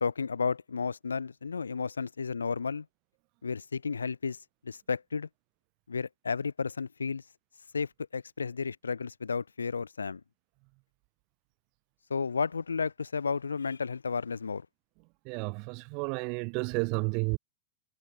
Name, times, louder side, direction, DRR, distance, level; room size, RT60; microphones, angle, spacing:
voice 1, 0.0-2.9 3.4-5.3 5.9-7.2 7.7-10.2 12.1-14.7, left 5 dB, 75° left, 0.5 m, -32 dB
voice 2, 15.2-17.4, right 34 dB, 45° right, 0.8 m, -31 dB
figure-of-eight pair, 90°, 0 cm